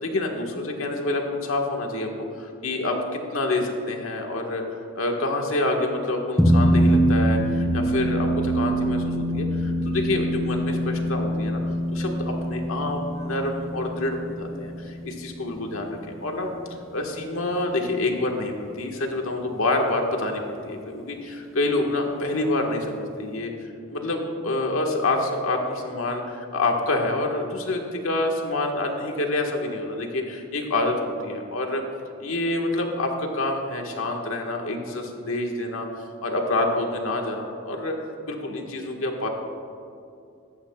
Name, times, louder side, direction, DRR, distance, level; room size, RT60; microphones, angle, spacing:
voice 1, 0.0-2.1 2.4-16.5 16.9-23.5 23.9-31.0 31.2-31.8 32.2-37.9 38.3-39.3, left 2 dB, 80° left, 2 dB, 1.6 m, -27 dB
sound 1, 6.4-17.1, equal, 5° left, 1.0 m, -24 dB
17.5 x 14.0 x 2.4 m, 2.5 s
head